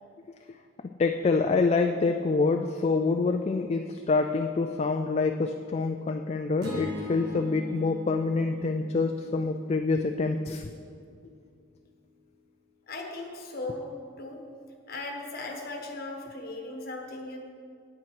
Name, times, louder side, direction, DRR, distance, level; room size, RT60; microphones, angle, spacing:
voice 1, 1.0-10.7, left 4 dB, 30° left, 5 dB, 0.3 m, -26 dB
sound 1, 6.6-10.9, left 2 dB, 55° right, 1.6 m, -40 dB
voice 2, 12.9-13.9 14.2-14.4 14.9-17.4, left 2 dB, 50° left, 2 dB, 1.3 m, -37 dB
8.9 x 8.7 x 4.7 m, 2.3 s
head